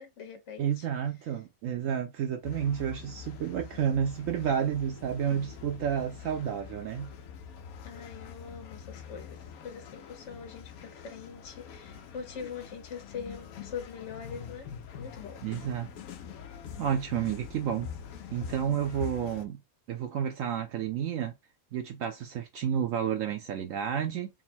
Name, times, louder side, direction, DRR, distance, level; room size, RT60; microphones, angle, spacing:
voice 1, 0.0-0.9 7.8-14.7 15.0-15.4, left 6 dB, 60° left, 1.2 m, -43 dB
voice 2, 0.6-7.1 15.4-15.9 16.8-17.9 18.3-19.6 19.9-21.3 21.7-24.3, right 9 dB, 70° right, 0.9 m, -30 dB
sound 1, 2.4-19.5, left 7 dB, 85° left, 1.1 m, -45 dB
3.6 x 2.1 x 4.2 m
omnidirectional pair, 1.5 m